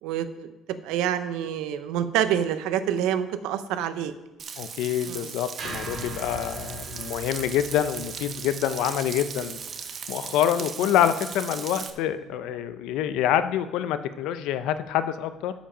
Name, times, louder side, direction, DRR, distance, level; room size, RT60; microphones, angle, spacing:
voice 1, 0.0-4.1 5.1-5.3, right 9 dB, 90° right, 11 dB, 0.6 m, -27 dB
Frying (food), 4.4-11.9, right 6 dB, 40° right, 0.6 m, -38 dB
voice 2, 4.6-9.6 10.1-15.5, left 10 dB, 80° left, 12 dB, 0.6 m, -26 dB
sound 1, 5.6-9.9, right 3 dB, 55° right, 3.8 m, -41 dB
12.0 x 5.2 x 5.0 m, 1.0 s
cardioid pair, 150°, 0 cm